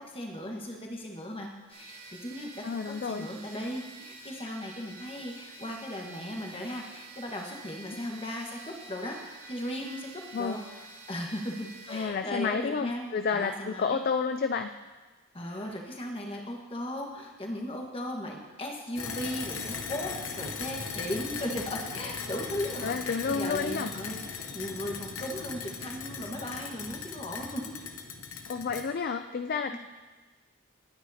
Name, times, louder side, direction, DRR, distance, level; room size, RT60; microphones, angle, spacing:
voice 1, 0.0-10.1 10.4-10.6 11.1-14.0 15.3-27.6 29.7-29.8, left 1 dB, 25° left, 0 dB, 1.4 m, -37 dB
sound 1, 1.7-12.1, right 3 dB, 40° right, 3.5 m, -48 dB
voice 2, 2.6-3.3 7.9-8.0 10.3-10.6 11.9-14.7 22.8-23.9 28.5-29.8, left 5 dB, 45° left, 8 dB, 0.3 m, -30 dB
sound 2, 19.0-28.8, left 5 dB, 75° left, 1.0 m, -38 dB
20.0 x 9.3 x 2.8 m, 1.3 s
head